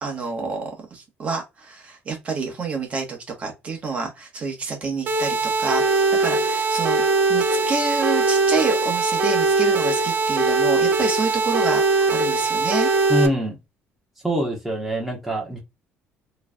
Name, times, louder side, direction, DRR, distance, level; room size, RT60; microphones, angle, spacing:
voice 1, 0.0-7.0 7.3-12.9, right 4 dB, 30° right, 1.2 m, -28 dB
sound 1, 5.1-13.3, right 3 dB, 45° right, 0.9 m, -21 dB
voice 2, 13.1-13.6 14.2-15.6, equal, 5° right, 1.3 m, -24 dB
4.6 x 3.2 x 2.3 m
cardioid pair, 165°, 4 cm